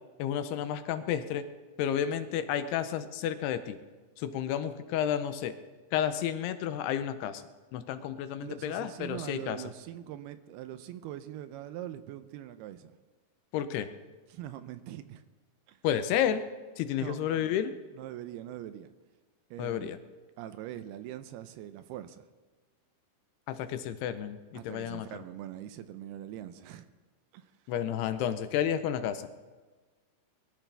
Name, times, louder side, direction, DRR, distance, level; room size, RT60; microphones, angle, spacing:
voice 1, 0.2-1.4 1.8-3.8 4.2-5.5 5.9-7.4 7.7-9.6 13.5-13.9 15.8-16.4 16.8-17.7 19.6-20.0 23.5-25.1 27.7-29.3, left 9 dB, 80° left, 10 dB, 2.8 m, -31 dB
voice 2, 8.4-13.0 14.3-15.2 15.7-15.8 17.0-17.6 18.0-18.9 19.5-20.0 20.4-22.2 24.5-26.9 27.3-27.5, right 12 dB, 80° right, 11 dB, 2.6 m, -42 dB
22.5 x 13.5 x 3.4 m, 1.3 s
omnidirectional pair, 4.7 m